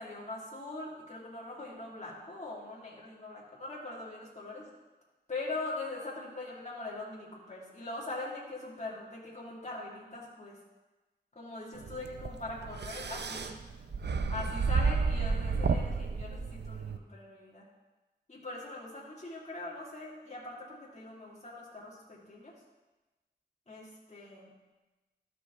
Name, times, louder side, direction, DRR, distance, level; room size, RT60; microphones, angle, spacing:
voice 1, 0.0-4.7 5.3-10.6 11.4-13.6 14.3-17.6 18.3-22.5 23.7-24.5, left 2 dB, 40° left, -6 dB, 2.1 m, -42 dB
sound 1, 11.8-17.0, right 4 dB, 70° right, 0.5 m, -31 dB
13.0 x 5.1 x 3.5 m, 1.1 s
cardioid pair, 45°, 18 cm